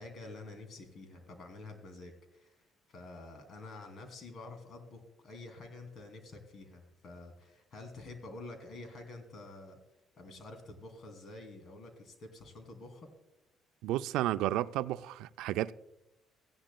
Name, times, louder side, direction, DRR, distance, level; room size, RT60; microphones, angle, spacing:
voice 1, 0.0-9.8 10.2-13.1, left 2 dB, 55° left, 2.5 m, -48 dB
voice 2, 13.8-15.7, right 14 dB, 80° right, 0.3 m, -32 dB
16.0 x 10.0 x 2.2 m
supercardioid pair, 70°, 0 cm